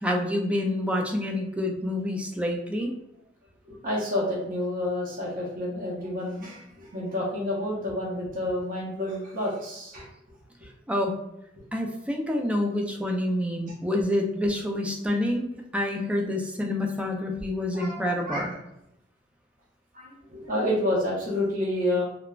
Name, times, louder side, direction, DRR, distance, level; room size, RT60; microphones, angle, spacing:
voice 1, 0.0-2.9 10.9-11.1 11.7-18.5, left 1 dB, 5° right, 1 dB, 0.3 m, -27 dB
voice 2, 3.7-10.0 17.7-18.5 19.9-22.0, left 1 dB, 50° right, -5 dB, 0.7 m, -29 dB
3.2 x 2.0 x 2.3 m, 0.82 s
head